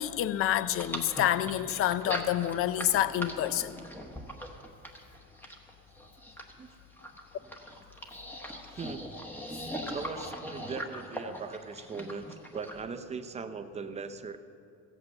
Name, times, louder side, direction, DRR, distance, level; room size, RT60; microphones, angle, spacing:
voice 1, 0.0-3.8, left 12 dB, 45° left, 0.5 m, -28 dB
sound 1, 0.7-12.8, equal, 5° left, 1.1 m, -40 dB
voice 2, 8.7-9.0 9.9-12.3 12.5-14.4, right 5 dB, 20° right, 0.5 m, -39 dB
16.0 x 8.3 x 7.6 m
cardioid pair, 155°, 30 cm